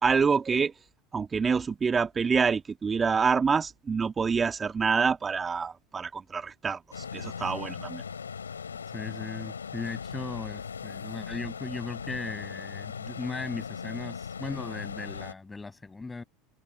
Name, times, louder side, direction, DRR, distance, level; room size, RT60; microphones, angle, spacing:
voice 1, 0.0-0.7 1.1-8.0, right 5 dB, 25° right, 1.9 m, -26 dB
sound 1, 6.9-15.3, left 6 dB, 90° left, 4.5 m, -38 dB
voice 2, 8.9-16.2, left 3 dB, 15° left, 6.7 m, -37 dB
hypercardioid pair, 80°, 0 cm